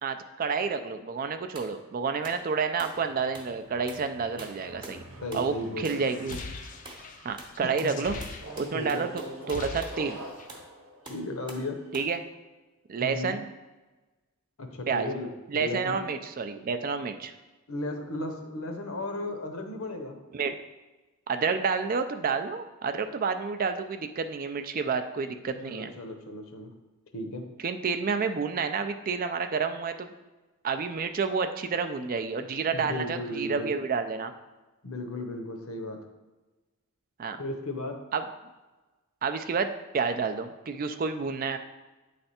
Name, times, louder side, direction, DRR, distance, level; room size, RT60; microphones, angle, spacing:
voice 1, 0.0-5.0 5.3-6.4 7.2-8.2 8.6-9.1 9.5-10.2 11.9-12.2 12.9-13.5 14.9-15.1 15.5-17.3 20.3-20.6 21.3-25.9 27.6-30.1 30.6-34.3 37.2-37.4 38.1-38.3 39.2-41.6, right 5 dB, 40° right, 8 dB, 0.4 m, -29 dB
sound 1, 1.6-1.7 2.2-2.4 2.8-3.0 3.3-3.5 3.9-4.1 4.4-5.0 5.3-5.6 5.8-6.1 6.3-6.5 6.9-7.1 7.4-10.0 10.5-10.7 11.1-11.7 11.9-12.2, right 2 dB, 20° right, 0.8 m, -46 dB
sound 2, 3.1-7.6 8.4-12.0, right 1 dB, 60° right, 0.8 m, -45 dB
voice 2, 5.2-6.1 7.6-8.2 8.7-9.0 11.0-11.8 13.0-13.4 14.6-16.0 17.7-20.2 25.6-26.7 27.1-27.5 32.7-33.7 34.8-36.0 37.4-38.0, left 2 dB, 70° left, 5 dB, 0.8 m, -35 dB
sound 3, 6.0-9.0 9.3-10.6, left 3 dB, 35° left, 0.4 m, -41 dB
8.8 x 3.3 x 4.2 m, 1.2 s
head